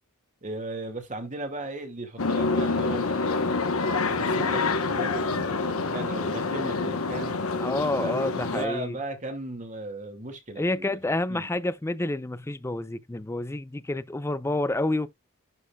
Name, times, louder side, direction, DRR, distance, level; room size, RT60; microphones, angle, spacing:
voice 1, 0.4-3.7 4.0-7.4 8.0-11.0 11.3-11.5, right 2 dB, 35° right, 2.2 m, -37 dB
sound 1, 2.2-8.7, left 3 dB, 85° left, 1.1 m, -27 dB
voice 2, 7.6-9.0 10.6-15.1, left 2 dB, 10° left, 0.4 m, -29 dB
11.0 x 4.3 x 2.3 m
head